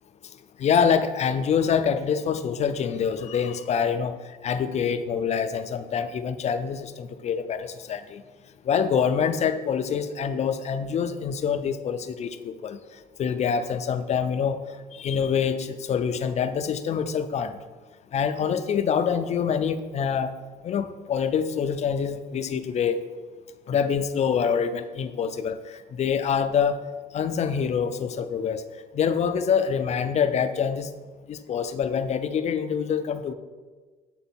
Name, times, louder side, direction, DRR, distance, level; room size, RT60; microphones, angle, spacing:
voice 1, 0.6-4.2 4.4-8.2 8.7-12.8 13.2-14.6 14.9-17.6 18.1-20.3 20.6-23.0 23.7-26.8 27.1-28.7 28.9-30.9 31.3-33.3, left 7 dB, 40° left, 10 dB, 0.4 m, -25 dB
8.0 x 3.8 x 4.3 m, 1.4 s
cardioid pair, 110°, 17 cm